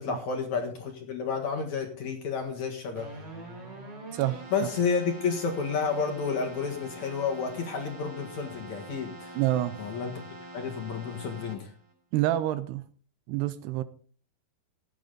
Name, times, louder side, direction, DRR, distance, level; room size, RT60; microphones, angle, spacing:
voice 1, 0.0-3.2 4.5-9.4 9.8-10.2 10.5-11.7, left 5 dB, 55° left, 2.4 m, -31 dB
Keyboard (musical), 2.9-11.9, right 1 dB, 25° right, 4.3 m, -44 dB
voice 2, 4.1-4.7 9.4-9.8 12.1-12.8 13.3-13.8, right 14 dB, 80° right, 2.6 m, -28 dB
16.5 x 11.0 x 3.9 m
omnidirectional pair, 5.0 m